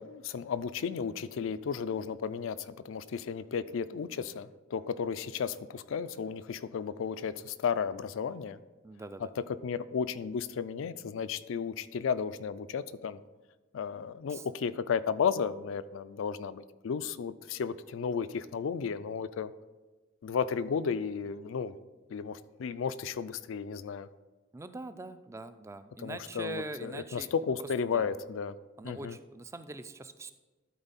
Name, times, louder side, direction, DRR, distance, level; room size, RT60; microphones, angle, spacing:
voice 1, 0.0-8.6 9.4-13.2 13.7-19.5 20.2-21.7 22.1-24.1 26.0-28.5 28.8-29.2, left 6 dB, 70° left, 16 dB, 0.4 m, -33 dB
voice 2, 8.8-9.3 14.3-14.5 24.5-27.3 27.6-28.1 28.8-30.3, right 2 dB, 15° right, 11 dB, 0.3 m, -43 dB
12.5 x 4.3 x 4.1 m, 1.3 s
head